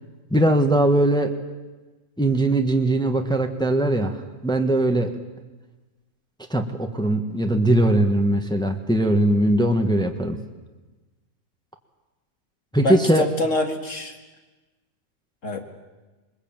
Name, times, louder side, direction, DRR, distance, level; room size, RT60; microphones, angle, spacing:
voice 1, 0.3-1.3 2.2-4.2 4.4-5.1 6.5-10.4 12.7-13.3, right 1 dB, 5° left, 4 dB, 1.4 m, -20 dB
voice 2, 12.8-14.1 15.4-15.6, left 2 dB, 60° left, 5 dB, 2.3 m, -25 dB
22.0 x 21.0 x 9.0 m, 1.2 s
omnidirectional pair, 1.5 m